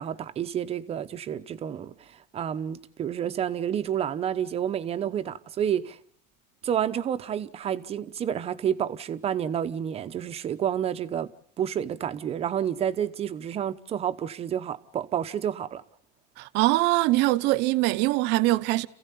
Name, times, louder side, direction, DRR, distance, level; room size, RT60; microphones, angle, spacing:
voice 1, 0.0-1.9 2.3-6.0 6.6-11.3 11.6-15.8, right 9 dB, 30° right, 1.0 m, -29 dB
voice 2, 16.4-18.9, right 19 dB, 55° right, 0.9 m, -23 dB
27.5 x 16.0 x 8.4 m
cardioid pair, 145°, 21 cm